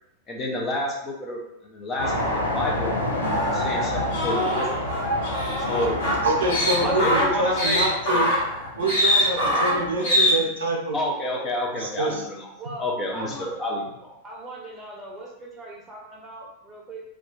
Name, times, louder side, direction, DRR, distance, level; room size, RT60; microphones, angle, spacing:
voice 1, 0.3-2.9 3.5-4.7 5.6-6.0 6.8-7.9 10.9-12.5 12.8-14.1, left 1 dB, 25° left, 0 dB, 0.6 m, -29 dB
sound 1, 2.0-9.9, left 1 dB, 80° left, 0.6 m, -30 dB
sound 2, 3.2-10.3, equal, 55° left, 1.1 m, -24 dB
voice 2, 6.2-8.3 8.8-11.0 11.3-11.4 11.8-12.2, right 2 dB, 65° right, 1 dB, 0.5 m, -26 dB
voice 3, 6.8-7.5 9.3-10.2 12.6-13.5 14.2-17.0, right 1 dB, 15° right, -2 dB, 0.8 m, -35 dB
2.3 x 2.3 x 3.6 m, 0.84 s
figure-of-eight pair, 90°, 0 cm